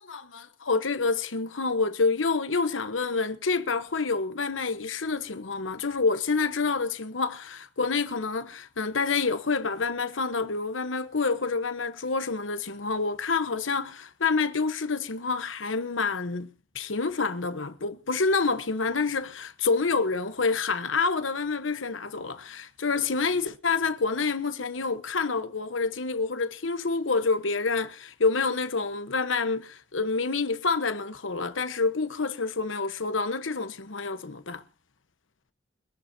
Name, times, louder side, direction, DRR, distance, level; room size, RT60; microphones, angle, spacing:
voice 1, 0.1-16.5 16.7-34.6, left 4 dB, 85° left, 1.1 m, -28 dB
24.5 x 11.0 x 2.8 m
head